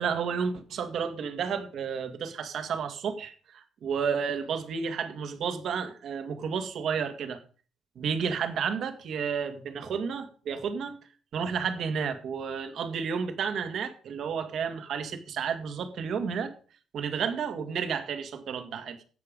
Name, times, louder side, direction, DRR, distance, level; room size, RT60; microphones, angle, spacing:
voice 1, 0.0-7.4 8.0-11.0 11.3-16.5 16.9-19.0, right 6 dB, 65° right, 1.8 m, -31 dB
16.0 x 6.8 x 5.2 m
cardioid pair, 135°, 0 cm